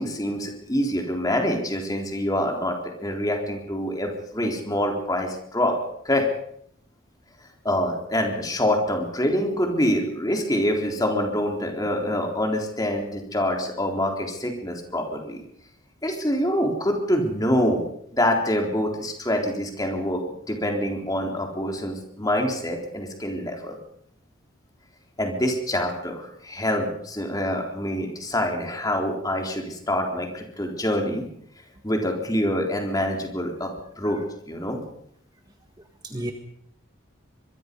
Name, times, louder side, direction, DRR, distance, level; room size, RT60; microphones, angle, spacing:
voice 1, 0.0-5.8 6.1-6.3 7.6-15.4 16.0-17.8 18.1-23.8 25.2-31.2 31.8-34.8, left 1 dB, 15° left, 2 dB, 3.8 m, -26 dB
voice 2, 35.8-36.3, right 1 dB, 20° right, 5 dB, 1.6 m, -35 dB
25.0 x 22.0 x 5.4 m, 0.70 s
head